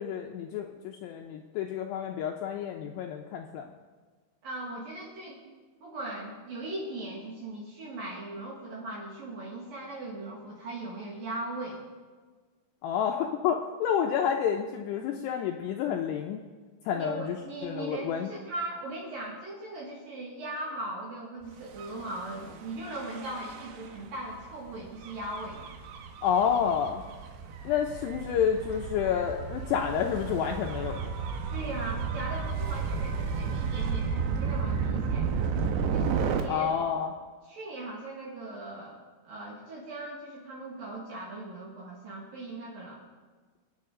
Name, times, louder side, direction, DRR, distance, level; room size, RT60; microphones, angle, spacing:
voice 1, 0.0-3.7 12.8-16.4 16.9-17.4 17.6-18.3 26.2-27.0 27.7-31.0 36.5-37.1, left 8 dB, 80° left, 2 dB, 2.6 m, -29 dB
voice 2, 4.4-5.4 5.8-11.8 16.9-25.6 31.5-35.5 35.9-36.7 37.5-39.0 39.2-43.0, right 2 dB, 55° right, -4 dB, 3.2 m, -39 dB
Gull seagull / Waves surf / Siren, 21.7-36.4, right 6 dB, 75° right, 3.2 m, -33 dB
26.0 x 9.1 x 3.8 m, 1.4 s
omnidirectional pair, 5.4 m